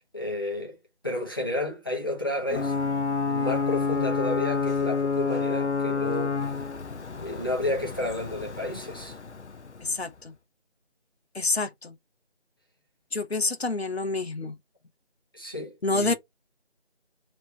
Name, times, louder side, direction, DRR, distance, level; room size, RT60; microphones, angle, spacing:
voice 1, 0.1-0.8 1.0-2.8 3.3-6.5 7.2-9.2 15.3-16.1, left 1 dB, 20° left, 1.1 m, -31 dB
Ocean / Boat Water vehicle / Alarm, 2.5-10.0, left 4 dB, 85° left, 0.7 m, -29 dB
voice 2, 9.8-10.3 11.3-11.9 13.1-14.6 15.8-16.1, left 3 dB, 65° left, 1.0 m, -28 dB
3.3 x 3.2 x 3.9 m
figure-of-eight pair, 165°, 34 cm